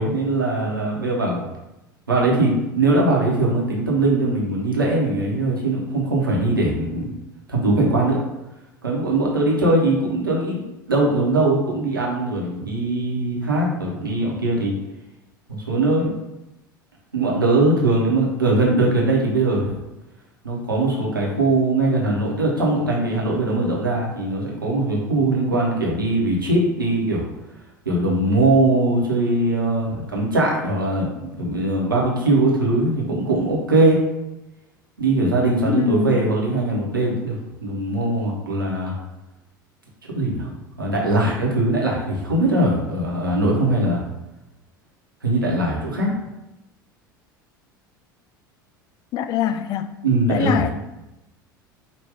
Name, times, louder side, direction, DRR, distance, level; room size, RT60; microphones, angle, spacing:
voice 1, 0.0-1.5 2.1-7.1 7.5-8.2 8.8-10.6 10.9-14.7 15.5-16.1 17.1-19.8 20.4-27.3 27.8-34.0 35.0-37.4 37.6-39.0 40.1-40.5 40.8-44.0 45.2-46.1 50.0-50.6, right 2 dB, 80° right, -3 dB, 1.1 m, -21 dB
voice 2, 35.7-36.3 49.1-49.9 50.3-50.7, left 9 dB, 35° left, 10 dB, 0.4 m, -23 dB
5.2 x 2.5 x 3.5 m, 0.96 s
figure-of-eight pair, 75°, 11 cm